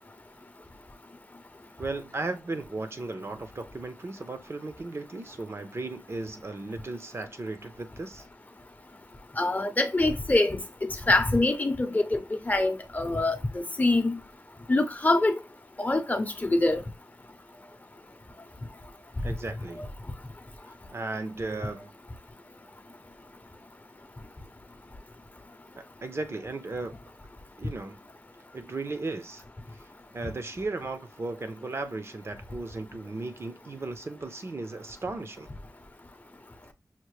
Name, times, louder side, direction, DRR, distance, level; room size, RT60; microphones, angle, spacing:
voice 1, 1.8-8.3 19.2-19.8 20.9-21.9 25.8-26.9 27.6-28.0 28.5-29.4 30.1-35.5, right 3 dB, 45° right, 0.6 m, -36 dB
voice 2, 9.4-14.2 14.7-15.4 15.8-16.8 19.8-19.9, left 2 dB, 25° left, 0.7 m, -25 dB
5.7 x 2.1 x 3.1 m
wide cardioid pair, 100°, 6 cm